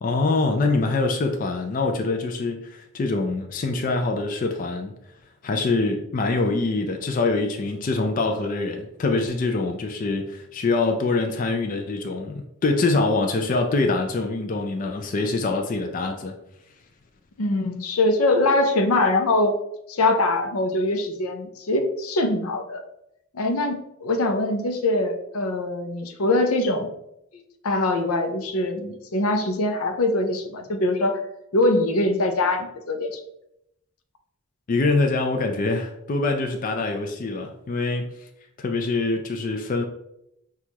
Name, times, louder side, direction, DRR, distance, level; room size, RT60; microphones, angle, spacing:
voice 1, 0.0-4.9 5.4-16.3 34.7-38.1 38.6-39.8, left 3 dB, 40° left, 4 dB, 0.3 m, -24 dB
voice 2, 17.4-19.5 19.9-22.8 23.3-26.9 27.6-31.2 31.5-33.2, left 2 dB, 85° left, 5 dB, 0.6 m, -23 dB
6.1 x 2.3 x 2.9 m, 0.82 s
head